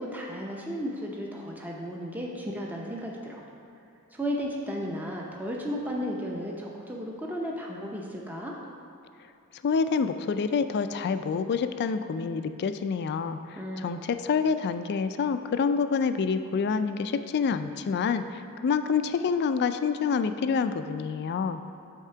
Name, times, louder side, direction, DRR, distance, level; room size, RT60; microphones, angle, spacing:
voice 1, 0.0-3.4 4.1-8.5 13.6-14.1, equal, 10° right, -2 dB, 0.6 m, -34 dB
voice 2, 9.6-13.4 13.8-21.6, left 5 dB, 50° left, 10 dB, 0.3 m, -27 dB
8.3 x 3.6 x 5.6 m, 2.8 s
head